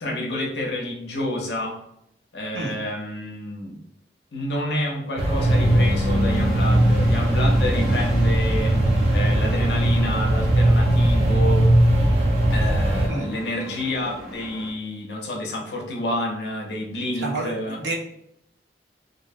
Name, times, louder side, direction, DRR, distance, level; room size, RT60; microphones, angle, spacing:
voice 1, 0.0-1.8 2.3-3.8 4.3-8.8 9.1-11.7 12.5-17.8, left 1 dB, 75° left, 0 dB, 0.6 m, -29 dB
sound 1, 5.2-8.4, left 2 dB, 25° left, 0.9 m, -30 dB
sound 2, 5.2-13.1, right 1 dB, 35° right, 0.3 m, -19 dB
sound 3, 5.4-14.7, equal, 5° right, 0.7 m, -35 dB
voice 2, 17.2-17.9, right 2 dB, 80° right, -1 dB, 0.6 m, -29 dB
2.7 x 2.0 x 2.6 m, 0.76 s
head